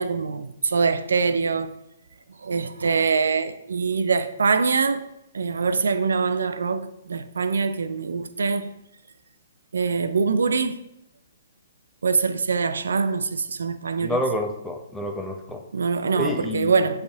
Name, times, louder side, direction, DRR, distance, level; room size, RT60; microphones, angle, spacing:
voice 1, 0.0-1.7 2.4-5.0 5.3-8.7 9.7-10.8 12.0-14.2 15.7-17.0, right 5 dB, 80° right, 0.4 m, -24 dB
voice 2, 14.0-15.6 16.2-16.7, left 1 dB, 5° left, 0.7 m, -28 dB
7.8 x 3.4 x 3.5 m
hypercardioid pair, 140°, 0 cm